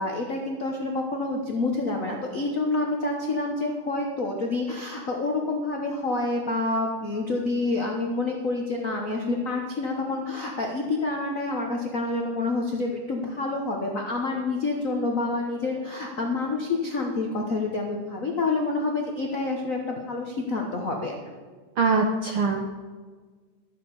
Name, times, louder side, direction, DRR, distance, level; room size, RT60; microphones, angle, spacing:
voice 1, 0.0-21.2, left 3 dB, 70° left, 0 dB, 0.7 m, -28 dB
voice 2, 21.8-22.8, right 4 dB, 75° right, 3 dB, 1.2 m, -23 dB
12.5 x 7.5 x 6.8 m, 1.4 s
omnidirectional pair, 3.3 m